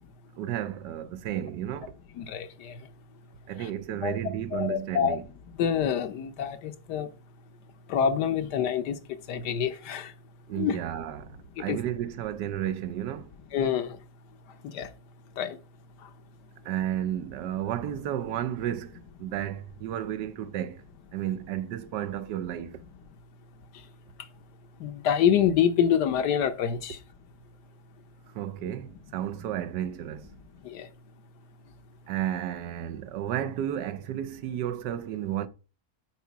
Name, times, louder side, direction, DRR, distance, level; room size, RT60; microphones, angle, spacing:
voice 1, 0.4-2.0 3.5-5.2 10.5-13.3 16.6-20.8 21.1-22.8 28.3-30.3 32.1-35.5, right 11 dB, 75° right, 1.2 m, -32 dB
voice 2, 2.2-2.8 3.6-3.7 4.0-4.1 4.5-5.2 5.6-7.1 7.9-9.0 9.3-10.1 10.6-10.8 11.7-11.8 13.5-14.0 14.7-14.9 15.4-15.6 24.8-27.0 30.7-30.9, left 8 dB, 70° left, 1.3 m, -26 dB
8.3 x 4.7 x 4.6 m
omnidirectional pair, 1.9 m